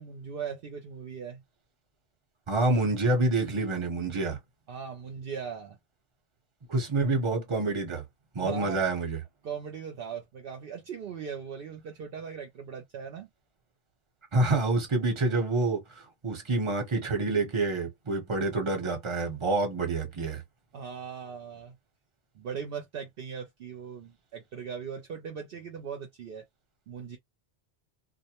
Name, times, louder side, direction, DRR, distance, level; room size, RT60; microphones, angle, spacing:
voice 1, 0.0-1.4 4.7-5.8 8.4-8.8 9.4-13.3 20.7-21.8 22.3-26.4 26.9-27.2, right 7 dB, 65° right, 0.7 m, -39 dB
voice 2, 2.5-4.4 6.7-8.0 8.3-9.2 14.3-20.4, right 2 dB, 30° right, 0.9 m, -27 dB
2.4 x 2.0 x 2.8 m
omnidirectional pair, 1.1 m